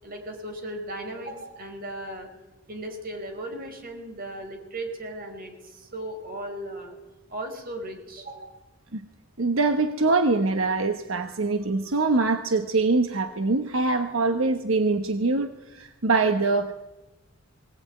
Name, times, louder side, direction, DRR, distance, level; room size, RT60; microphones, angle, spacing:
voice 1, 0.0-2.3 2.7-7.0 7.3-8.6, right 1 dB, 45° right, 4 dB, 4.8 m, -36 dB
voice 2, 9.4-16.7, right 3 dB, 75° right, 7 dB, 1.2 m, -23 dB
21.0 x 17.5 x 9.5 m, 1.0 s
head